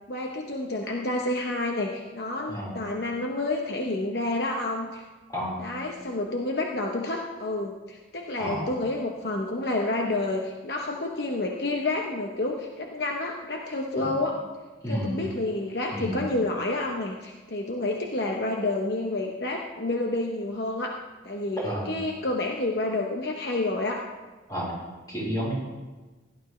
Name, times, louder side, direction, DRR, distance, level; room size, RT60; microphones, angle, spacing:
voice 1, 0.1-5.0 5.6-14.4 14.9-21.0 21.2-21.6 21.9-24.0, left 2 dB, 60° left, 1 dB, 1.0 m, -29 dB
voice 2, 5.3-5.6 8.4-8.7 14.0-14.1 14.8-15.2 15.9-16.2 21.6-21.9 24.5-24.7 25.1-25.5, equal, 20° left, -5 dB, 4.5 m, -31 dB
16.5 x 12.0 x 3.2 m, 1.3 s
head